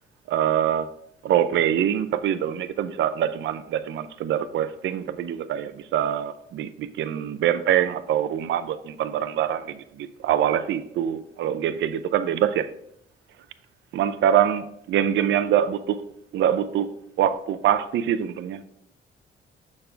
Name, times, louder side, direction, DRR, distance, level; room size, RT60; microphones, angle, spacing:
voice 1, 0.3-0.9 1.2-12.7 13.9-16.0 16.3-16.9 17.2-18.6, right 10 dB, 70° right, 0.5 m, -24 dB
6.8 x 5.3 x 4.5 m
cardioid pair, 90°, 20 cm